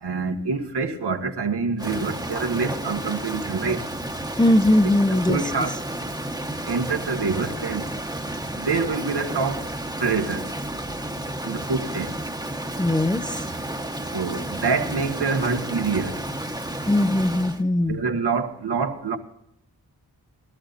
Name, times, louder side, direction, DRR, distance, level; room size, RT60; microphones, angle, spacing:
voice 1, 0.0-3.8 5.1-5.8 6.6-7.9 8.5-9.6 10.0-10.5 11.4-12.1 14.1-16.2 17.9-19.2, right 4 dB, 75° right, 1.8 m, -26 dB
Rain, 1.8-17.6, right 1 dB, 10° right, 1.1 m, -32 dB
voice 2, 4.4-5.4 12.8-13.4 16.9-18.0, left 1 dB, 10° left, 0.6 m, -20 dB
22.5 x 12.5 x 2.6 m
wide cardioid pair, 70°, 40 cm